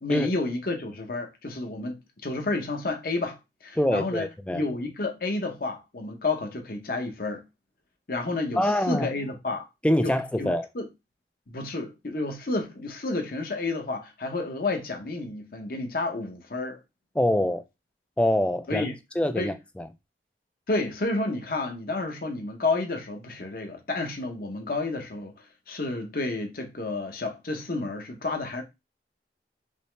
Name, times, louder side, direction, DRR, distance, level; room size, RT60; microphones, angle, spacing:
voice 1, 0.0-4.3 4.5-7.4 8.1-9.7 10.0-10.9 11.5-16.8 18.7-18.9 19.4-19.5 20.7-28.6, left 2 dB, 55° left, 0.9 m, -30 dB
voice 2, 3.8-4.6 8.6-9.1 9.8-10.7 17.1-17.6 18.2-18.9 19.2-19.9, left 1 dB, 5° left, 0.3 m, -24 dB
5.3 x 2.1 x 3.2 m
head